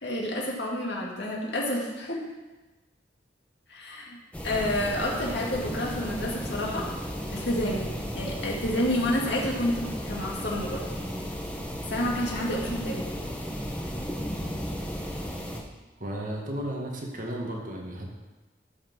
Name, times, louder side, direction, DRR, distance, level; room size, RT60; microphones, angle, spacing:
voice 1, 0.0-2.2 3.7-4.2 4.4-6.8 7.3-7.9 8.1-10.8 11.9-13.0, left 1 dB, 70° left, -3 dB, 2.4 m, -29 dB
sound 1, 4.3-15.6, equal, 10° left, 1.2 m, -34 dB
voice 2, 16.0-18.1, right 1 dB, 50° right, -1 dB, 1.9 m, -34 dB
12.5 x 5.9 x 6.2 m, 1.2 s
head